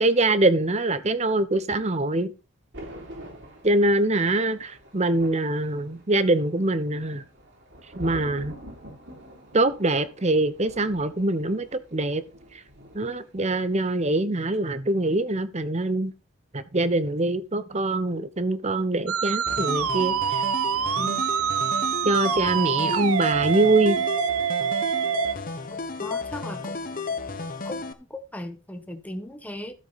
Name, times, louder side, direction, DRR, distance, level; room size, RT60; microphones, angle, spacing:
voice 1, 0.0-2.3 3.6-7.2 8.0-8.5 9.5-11.7 11.9-12.2 12.9-16.1 16.5-20.2 21.0-21.2 22.0-24.0, right 2 dB, 30° right, 0.9 m, -24 dB
Thunder, 2.7-13.3 13.6-13.9, equal, 55° right, 3.5 m, -45 dB
Musical instrument, 19.1-25.3, right 8 dB, 85° right, 0.9 m, -25 dB
sound 1, 19.5-27.9, left 4 dB, 40° left, 1.1 m, -33 dB
voice 2, 26.0-26.8 27.6-27.8 28.1-29.7, left 1 dB, 5° left, 1.2 m, -37 dB
13.5 x 7.9 x 4.2 m
head